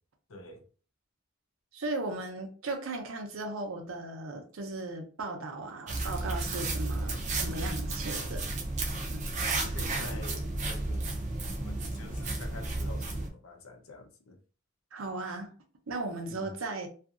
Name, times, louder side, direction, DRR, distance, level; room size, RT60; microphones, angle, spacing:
voice 1, 0.3-0.6 7.1-7.6 9.5-11.1 11.6-14.4 16.3-16.5, left 2 dB, 85° left, 0.6 m, -46 dB
voice 2, 1.7-8.6 9.1-9.3 14.9-15.5 15.9-16.9, right 2 dB, 80° right, 0.6 m, -37 dB
sound 1, 5.9-13.3, right 2 dB, 35° right, 0.4 m, -33 dB
2.7 x 2.5 x 2.4 m
head